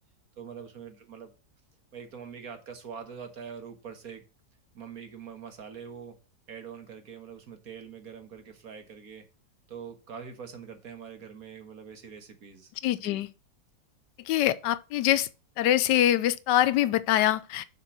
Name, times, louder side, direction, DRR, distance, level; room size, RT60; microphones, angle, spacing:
voice 1, 0.4-1.3 1.9-4.2 4.7-6.2 6.5-9.2 9.7-12.7 13.0-13.2, right 7 dB, 60° right, 1.8 m, -44 dB
voice 2, 12.8-13.3 14.3-15.3 15.6-17.7, left 12 dB, 85° left, 1.2 m, -24 dB
6.8 x 5.3 x 6.0 m
omnidirectional pair, 1.8 m